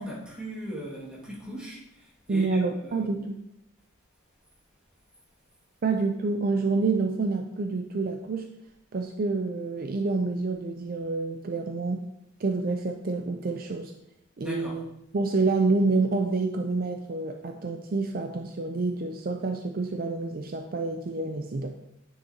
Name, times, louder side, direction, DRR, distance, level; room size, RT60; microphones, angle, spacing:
voice 1, 0.0-3.1 14.4-14.8, right 1 dB, 5° right, -6 dB, 2.0 m, -39 dB
voice 2, 2.3-3.4 5.8-8.5 8.9-12.0 12.4-13.9 14.4-14.8 15.1-21.7, right 3 dB, 45° right, 4 dB, 0.4 m, -28 dB
9.8 x 6.2 x 2.8 m, 0.83 s
head